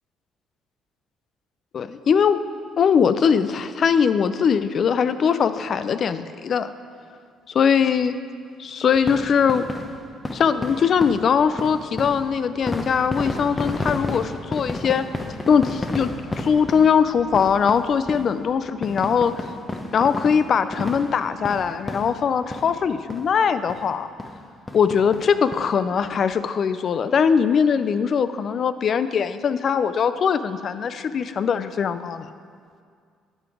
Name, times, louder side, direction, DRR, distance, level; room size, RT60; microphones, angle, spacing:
voice 1, 1.7-2.4 2.8-6.7 7.5-8.2 8.6-9.6 10.3-15.1 15.5-16.1 16.4-19.5 19.9-24.1 24.7-32.3, left 6 dB, 55° left, 12 dB, 0.4 m, -21 dB
sound 1, 9.0-22.8 23.1-23.3 23.7-23.8 24.2-24.4 24.7-25.6 26.0-26.1 26.3-26.4, left 2 dB, 20° left, 0.8 m, -32 dB
10.5 x 5.2 x 4.8 m, 2.2 s
supercardioid pair, 70°, 0 cm